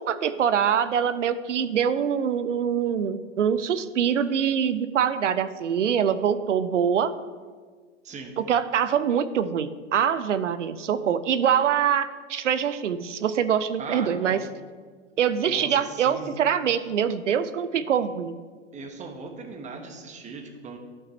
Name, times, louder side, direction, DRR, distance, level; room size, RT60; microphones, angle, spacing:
voice 1, 0.0-7.1 8.4-14.4 15.2-18.3, right 8 dB, 75° right, 13 dB, 0.7 m, -24 dB
voice 2, 8.0-8.3 13.8-14.4 15.4-16.4 18.7-20.8, right 4 dB, 20° right, 5 dB, 1.2 m, -39 dB
12.0 x 5.7 x 4.3 m, 1.5 s
hypercardioid pair, 105°, 37 cm